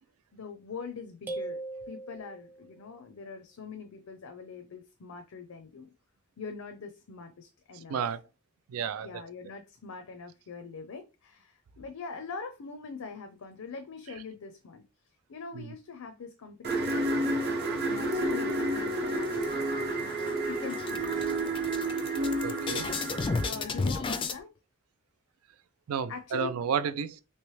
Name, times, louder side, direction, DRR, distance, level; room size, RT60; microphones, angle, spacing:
voice 1, 0.3-1.6 1.9-5.9 6.4-8.1 9.0-14.8 15.3-21.3 23.1-24.5 26.1-26.6, left 5 dB, 80° left, 0.5 m, -43 dB
sound 1, 1.3-2.8, right 2 dB, 10° right, 0.7 m, -39 dB
voice 2, 7.9-8.2 8.7-9.1 15.5-15.7 22.4-22.9 25.9-27.2, right 7 dB, 85° right, 0.4 m, -31 dB
sound 2, 16.6-23.5, right 1 dB, 50° right, 0.8 m, -30 dB
sound 3, 19.1-19.8 20.2-20.3 20.6-24.4, left 4 dB, 25° left, 0.3 m, -33 dB
3.1 x 2.9 x 3.1 m
head